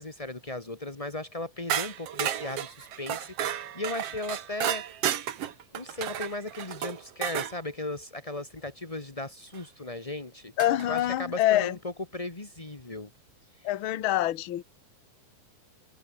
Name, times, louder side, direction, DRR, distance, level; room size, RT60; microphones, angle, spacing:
voice 1, 0.0-4.8 5.7-10.5 10.9-13.1, left 2 dB, 20° left, 0.9 m, -37 dB
sound 1, 1.7-7.5 9.5-9.6 10.6-11.0, right 10 dB, 55° right, 2.0 m, -32 dB
voice 2, 10.6-11.8 13.6-14.6, left 13 dB, 60° left, 1.4 m, -25 dB
omnidirectional pair, 4.1 m